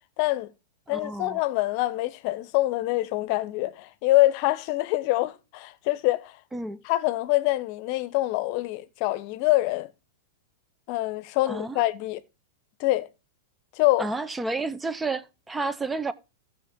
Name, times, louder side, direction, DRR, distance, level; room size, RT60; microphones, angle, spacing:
voice 1, 0.2-0.5 0.9-6.4 6.8-9.9 10.9-12.2 12.8-13.1 13.8-14.1, left 18 dB, 50° left, 0.8 m, -25 dB
voice 2, 0.9-1.4 6.5-6.8 11.5-11.8 14.0-16.1, right 3 dB, 10° right, 0.7 m, -31 dB
14.5 x 5.8 x 3.7 m
hypercardioid pair, 115°, 0 cm